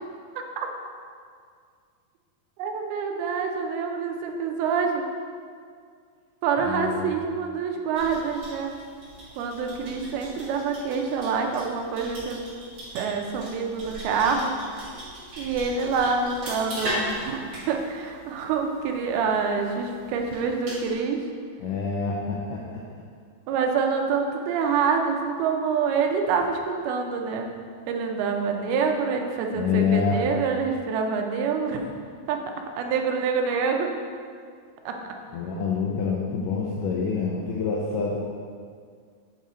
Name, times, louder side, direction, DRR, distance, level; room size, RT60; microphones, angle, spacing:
voice 1, 0.4-0.7 2.6-5.0 6.4-8.7 9.4-12.4 12.9-14.5 15.4-21.2 23.5-27.5 27.9-31.8 32.3-32.4 32.8-33.9 34.9-35.0, right 5 dB, 85° right, 3 dB, 2.5 m, -26 dB
voice 2, 6.6-7.2 21.6-22.8 29.5-30.2 35.3-38.2, left 5 dB, 85° left, -3 dB, 1.9 m, -26 dB
sound 1, 7.9-20.9, right 1 dB, 45° right, 2.4 m, -38 dB
8.7 x 3.7 x 4.3 m, 2.1 s
omnidirectional pair, 4.4 m